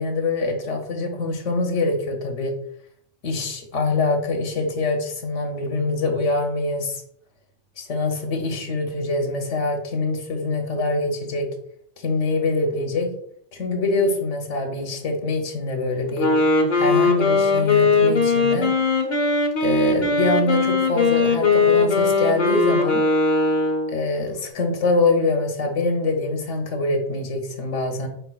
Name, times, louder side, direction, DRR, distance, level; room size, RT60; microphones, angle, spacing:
voice 1, 0.0-2.5 3.2-7.0 7.8-11.5 12.0-13.1 13.5-16.3 16.8-18.7 19.6-23.0 23.9-28.1, left 3 dB, 90° left, 3 dB, 1.2 m, -24 dB
Wind instrument woodwind instrument, 16.1-24.0, left 3 dB, 45° left, 0.7 m, -19 dB
4.8 x 4.5 x 2.3 m, 0.66 s
omnidirectional pair, 1.2 m